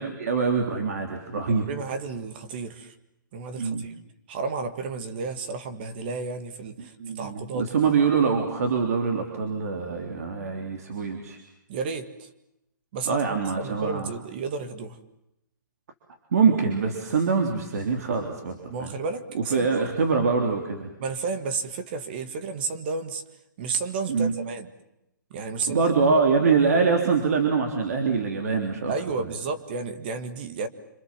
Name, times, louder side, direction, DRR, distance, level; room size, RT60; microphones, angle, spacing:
voice 1, 0.0-1.7 3.6-3.8 7.0-11.4 13.1-14.1 16.3-18.9 19.3-20.9 24.1-24.3 25.7-28.9 29.2-29.3, right 5 dB, 50° right, 4 dB, 3.4 m, -24 dB
voice 2, 1.7-2.9 3.3-3.9 4.3-7.8 11.7-12.3 12.9-13.2 13.6-15.0 18.7-19.9 21.0-23.2 23.6-24.7 25.3-25.8 28.9-30.7, right 4 dB, 30° right, 10 dB, 1.8 m, -32 dB
27.5 x 26.5 x 7.5 m, 0.83 s
hypercardioid pair, 170°, 11 cm